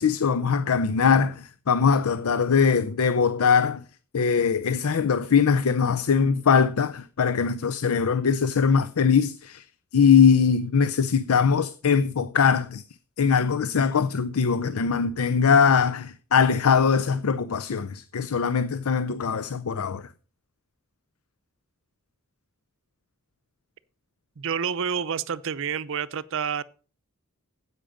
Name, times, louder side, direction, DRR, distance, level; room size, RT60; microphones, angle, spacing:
voice 1, 0.0-3.8 4.1-9.6 9.9-12.8 13.2-20.1, left 6 dB, 80° left, 0.5 m, -21 dB
voice 2, 24.4-26.6, right 7 dB, 65° right, 0.6 m, -28 dB
10.0 x 8.1 x 5.1 m
head